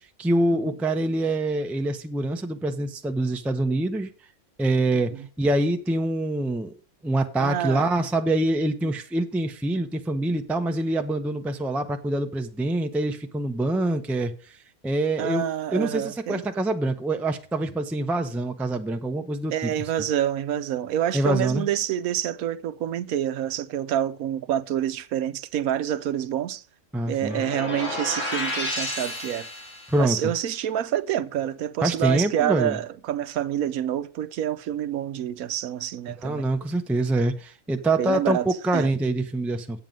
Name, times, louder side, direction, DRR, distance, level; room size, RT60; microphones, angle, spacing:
voice 1, 0.2-4.1 4.6-5.1 5.4-6.7 7.0-14.3 14.8-15.4 15.7-19.7 21.1-21.7 26.9-27.4 29.9-30.3 31.8-32.8 36.2-39.8, right 2 dB, ahead, 0.4 m, -25 dB
voice 2, 7.4-7.9 15.2-16.4 19.5-26.6 27.1-29.5 30.0-36.4 38.0-38.9, right 11 dB, 75° right, 1.1 m, -27 dB
sound 1, 27.2-30.1, left 1 dB, 55° left, 4.2 m, -31 dB
8.2 x 7.5 x 5.3 m
omnidirectional pair, 1.6 m